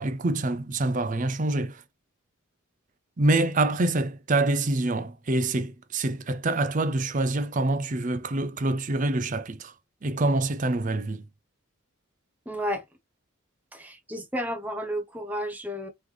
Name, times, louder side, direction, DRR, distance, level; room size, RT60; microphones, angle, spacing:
voice 1, 0.0-1.8 3.2-9.7 10.0-11.2, right 2 dB, 35° right, 0.5 m, -26 dB
voice 2, 12.5-12.8 13.7-15.9, equal, 5° right, 0.8 m, -32 dB
3.8 x 3.2 x 3.2 m
head